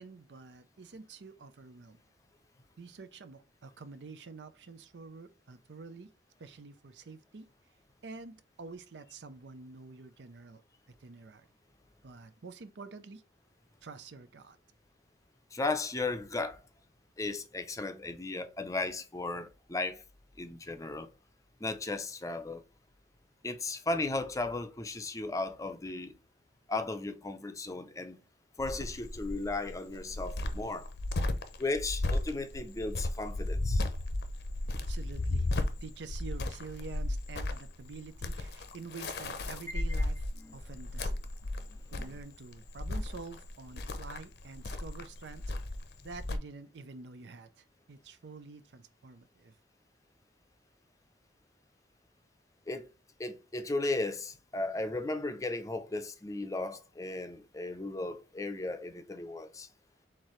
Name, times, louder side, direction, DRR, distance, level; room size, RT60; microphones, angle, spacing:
voice 1, 0.0-2.0 2.8-6.1 6.4-7.5 8.0-10.6 11.0-11.5 12.0-13.2 13.8-14.6 34.8-35.5 35.8-41.2 41.9-45.4 46.0-49.6, right 4 dB, 85° right, 0.6 m, -48 dB
voice 2, 15.5-16.6 17.2-20.0 20.4-21.1 21.6-22.6 23.4-26.2 26.7-28.2 28.6-30.9 31.6-33.9 39.7-39.8 40.4-40.5 41.7-42.1 52.7-52.9 53.2-59.7, left 2 dB, 20° left, 0.5 m, -35 dB
Cricket, 28.6-46.4, left 2 dB, 65° left, 0.6 m, -35 dB
4.5 x 3.8 x 3.1 m
head